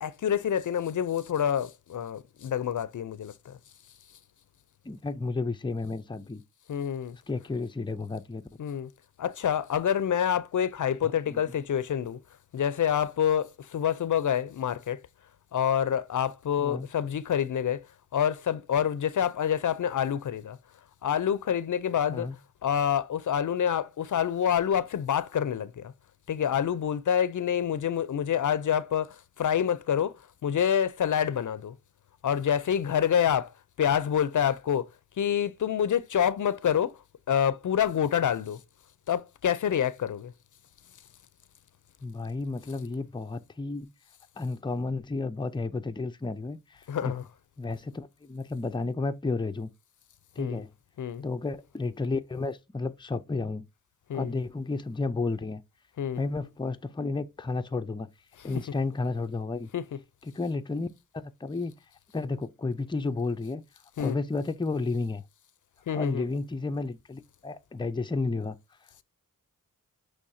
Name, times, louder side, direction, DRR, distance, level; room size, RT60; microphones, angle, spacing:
voice 1, 0.0-3.6 6.7-7.2 8.6-8.9 9.2-12.2 12.5-15.0 15.5-17.9 18.1-20.6 21.0-22.3 22.6-25.9 26.3-30.2 30.4-31.7 32.2-33.5 33.8-34.9 35.2-36.9 37.3-38.6 39.1-40.3 46.9-47.2 50.4-50.6 51.0-51.2 54.1-54.3 56.0-56.2 59.7-59.8 64.0-64.2 65.9-66.3, left 9 dB, 65° left, 0.5 m, -27 dB
voice 2, 4.8-6.4 7.3-8.6 11.0-11.4 16.6-16.9 22.1-22.4 42.0-43.9 44.4-47.2 47.6-49.7 50.4-50.7 51.2-53.7 54.1-55.6 56.2-58.1 58.4-59.7 60.2-60.9 61.1-61.7 62.1-63.6 64.0-65.2 65.9-68.6, left 3 dB, 15° left, 0.5 m, -32 dB
6.3 x 3.2 x 2.7 m
wide cardioid pair, 80°, 32 cm